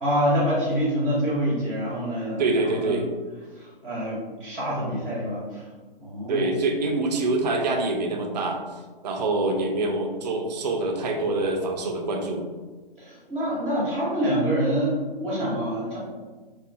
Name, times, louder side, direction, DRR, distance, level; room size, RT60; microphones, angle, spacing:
voice 1, 0.0-3.0 3.6-5.6 6.0-6.5 13.0-16.0, equal, 5° left, -13 dB, 0.6 m, -26 dB
voice 2, 2.4-3.1 6.3-8.6 9.0-12.5, right 2 dB, 45° right, 3 dB, 0.5 m, -25 dB
2.6 x 2.3 x 2.5 m, 1.4 s
figure-of-eight pair, 135°, 30 cm